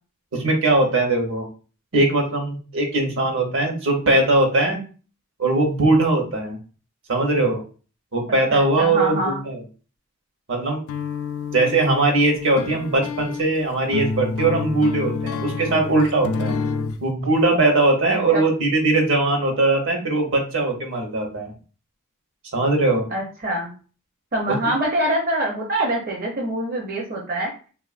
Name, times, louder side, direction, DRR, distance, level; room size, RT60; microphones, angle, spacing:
voice 1, 0.3-1.5 1.9-4.8 5.4-6.6 7.1-7.6 8.1-9.6 10.5-10.8 11.5-16.6 17.0-21.5 22.5-23.1, right 2 dB, 65° right, 2 dB, 0.9 m, -20 dB
voice 2, 8.5-9.4 18.1-18.4 23.1-23.7 24.3-27.5, right 1 dB, 45° right, -2 dB, 0.6 m, -25 dB
sound 1, 10.9-17.0, left 4 dB, 80° left, 0.3 m, -28 dB
3.4 x 2.4 x 2.4 m, 0.37 s
head